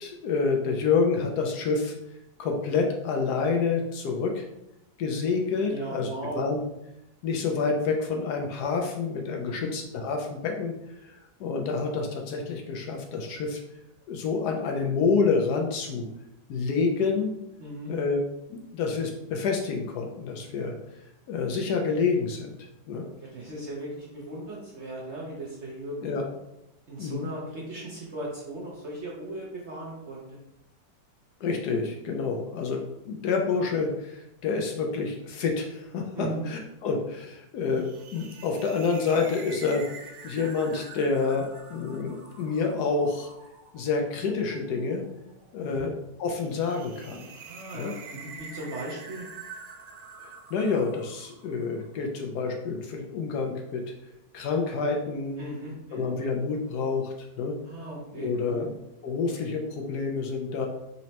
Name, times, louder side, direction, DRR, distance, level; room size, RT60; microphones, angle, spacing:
voice 1, 0.0-1.9 2.4-4.5 5.0-6.1 6.4-6.6 7.2-10.7 11.0-13.6 14.1-16.1 16.5-17.3 17.9-18.2 18.5-20.8 21.3-22.5 22.9-23.1 26.0-26.2 27.0-27.3 31.4-37.9 38.1-39.9 40.2-43.3 43.7-45.0 45.5-45.9 46.2-47.2 47.7-47.9 50.5-53.8 54.3-55.4 55.9-57.6 58.1-58.7 59.0-60.7, left 4 dB, 70° left, 2 dB, 1.1 m, -28 dB
voice 2, 5.7-6.5 9.5-9.7 17.6-18.0 23.3-26.1 26.9-30.4 36.2-36.5 45.6-45.9 47.4-49.3 55.4-56.1 57.6-58.7, right 1 dB, 55° right, -4 dB, 0.8 m, -37 dB
sound 1, 37.6-52.0, right 5 dB, 75° right, 1.2 m, -47 dB
4.1 x 3.1 x 2.8 m, 0.86 s
omnidirectional pair, 1.9 m